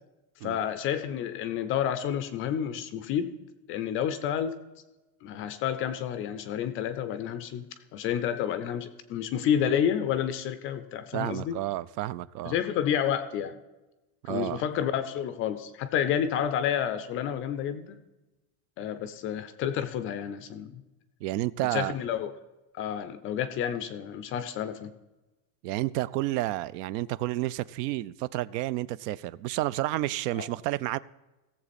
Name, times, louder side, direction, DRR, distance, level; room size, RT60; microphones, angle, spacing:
voice 1, 0.4-3.3 3.7-4.6 5.2-7.6 7.9-11.6 12.4-13.5 14.3-18.0 18.8-20.8 21.7-22.3 22.7-24.9 30.3-30.5, left 9 dB, 30° left, 0.3 m, -30 dB
voice 2, 11.1-12.6 14.2-14.6 21.2-22.0 25.6-31.0, right 16 dB, 80° right, 0.6 m, -30 dB
17.0 x 7.3 x 4.1 m
supercardioid pair, 150°, 48 cm